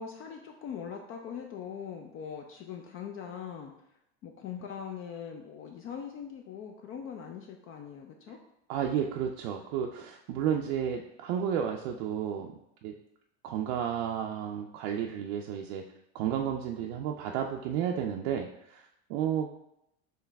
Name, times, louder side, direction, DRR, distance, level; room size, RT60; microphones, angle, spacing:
voice 1, 0.0-3.7 4.2-8.4, left 7 dB, 40° left, 3 dB, 0.4 m, -41 dB
voice 2, 8.7-12.5 12.8-12.9 13.4-15.8 16.1-19.6, right 9 dB, 70° right, 1 dB, 0.5 m, -32 dB
4.6 x 3.1 x 3.4 m, 0.81 s
supercardioid pair, 125°, 33 cm